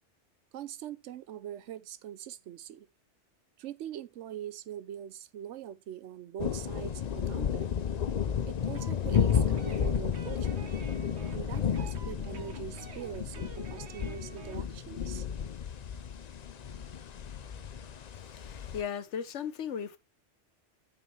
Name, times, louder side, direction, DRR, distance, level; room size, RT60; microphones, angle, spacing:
voice 1, 0.5-2.9 3.6-7.7 8.5-10.7 11.3-15.3, right 10 dB, 85° right, 1.0 m, -43 dB
sound 1, 6.4-18.8, left 8 dB, 45° left, 0.6 m, -32 dB
sound 2, 8.7-14.6, right 5 dB, 70° right, 1.2 m, -49 dB
voice 2, 18.2-20.0, left 8 dB, 80° left, 1.2 m, -37 dB
9.3 x 5.6 x 3.1 m
omnidirectional pair, 1.2 m